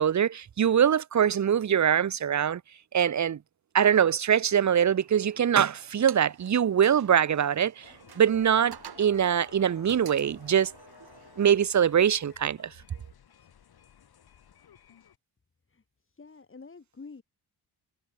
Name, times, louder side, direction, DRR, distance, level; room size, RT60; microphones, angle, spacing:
voice 1, 0.0-2.6 2.9-3.4 3.7-7.8 8.2-10.7 11.4-12.7, right 8 dB, 45° right, 1.0 m, -23 dB
sound 1, 4.5-11.6, right 9 dB, 75° right, 5.9 m, -50 dB
sound 2, 7.8-15.2, left 8 dB, 75° left, 5.2 m, -55 dB
voice 2, 15.7-17.2, left 4 dB, 35° left, 4.6 m, -48 dB
wide cardioid pair, 110°, 38 cm